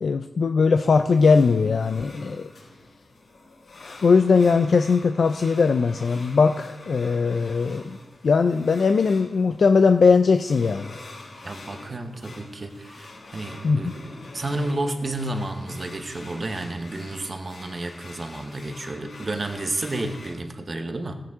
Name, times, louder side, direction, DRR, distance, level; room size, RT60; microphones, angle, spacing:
voice 1, 0.0-2.5 3.8-8.0 8.2-11.0 13.6-13.9, left 5 dB, 60° left, 7 dB, 0.4 m, -20 dB
sound 1, 0.9-20.3, left 2 dB, 80° left, 4.8 m, -46 dB
voice 2, 11.4-21.2, right 2 dB, 35° right, 7 dB, 1.0 m, -31 dB
15.5 x 9.4 x 3.6 m, 1.1 s
wide cardioid pair, 150°, 0 cm